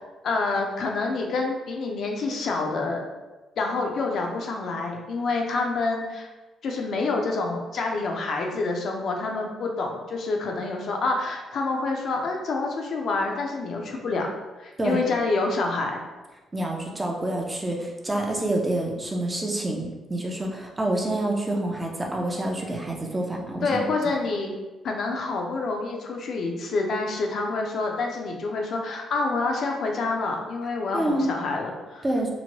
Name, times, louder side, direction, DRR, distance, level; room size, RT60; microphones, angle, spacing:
voice 1, 0.2-3.0 3.6-6.3 6.6-14.3 14.6-16.0 23.6-24.5 24.8-32.1, left 3 dB, 65° left, 1 dB, 0.5 m, -27 dB
voice 2, 16.5-23.9 30.9-31.3 32.0-32.3, right 1 dB, 20° right, 0 dB, 0.5 m, -27 dB
2.9 x 2.1 x 2.8 m, 1.2 s
cardioid pair, 90°, 0 cm